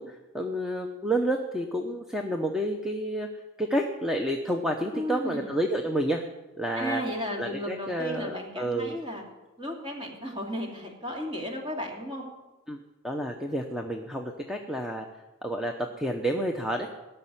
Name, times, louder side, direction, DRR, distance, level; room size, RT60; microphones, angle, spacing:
voice 1, 0.0-3.3 3.6-6.2 6.6-7.0 7.4-9.0 12.7-12.8 13.0-15.1 15.4-16.9, right 1 dB, ahead, 3 dB, 0.7 m, -30 dB
voice 2, 4.9-5.5 6.8-9.2 9.6-12.3, equal, 25° right, 0 dB, 2.6 m, -34 dB
17.5 x 6.7 x 10.0 m, 1.1 s
head